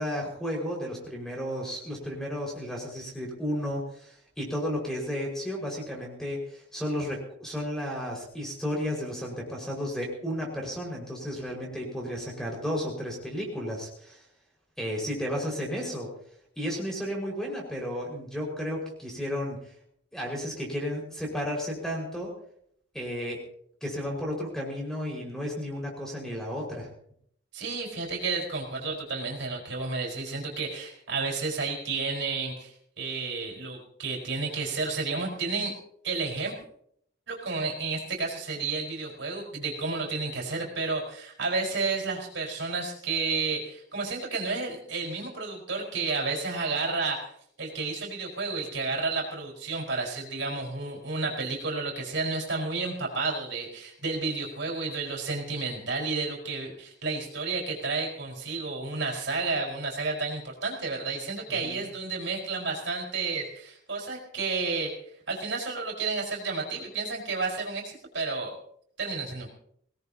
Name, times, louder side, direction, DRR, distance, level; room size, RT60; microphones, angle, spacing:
voice 1, 0.0-14.2 14.8-16.1 16.6-19.6 20.1-22.3 22.9-23.4 23.8-26.9 61.5-61.8, equal, 5° left, -2 dB, 5.4 m, -33 dB
voice 2, 27.5-35.7 36.0-36.5 37.3-47.3 47.6-64.9 65.3-68.5 69.0-69.5, right 3 dB, 80° right, -1 dB, 4.8 m, -31 dB
24.0 x 18.0 x 2.9 m, 0.67 s
head